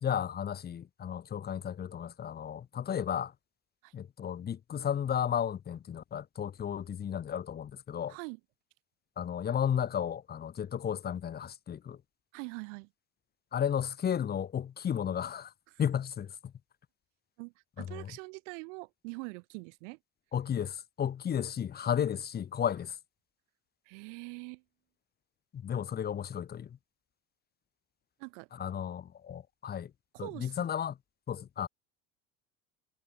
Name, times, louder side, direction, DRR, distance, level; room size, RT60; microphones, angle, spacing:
voice 1, 0.0-3.3 3.9-8.1 9.2-12.0 13.5-15.5 15.8-16.5 17.8-18.1 20.3-23.0 25.5-26.7 28.6-29.9 30.2-31.0 31.3-31.7, left 8 dB, 25° left, 3.1 m, -33 dB
voice 2, 8.1-8.4 12.3-12.9 15.7-15.8 17.4-20.0 23.8-24.6 28.2-28.5 30.1-30.7, right 31 dB, 80° right, 4.9 m, -43 dB
cardioid pair, 155°, 36 cm